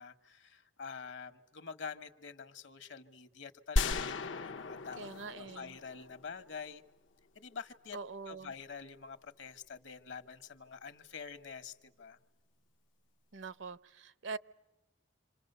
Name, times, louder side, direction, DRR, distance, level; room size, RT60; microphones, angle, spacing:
voice 1, 0.0-6.8 7.3-8.0 8.3-12.2, left 5 dB, 70° left, 1.3 m, -47 dB
sound 1, 3.8-6.7, left 2 dB, 85° left, 0.9 m, -35 dB
voice 2, 5.0-5.8 7.9-8.5 13.3-14.4, right 4 dB, 75° right, 0.8 m, -43 dB
27.0 x 27.0 x 6.8 m
head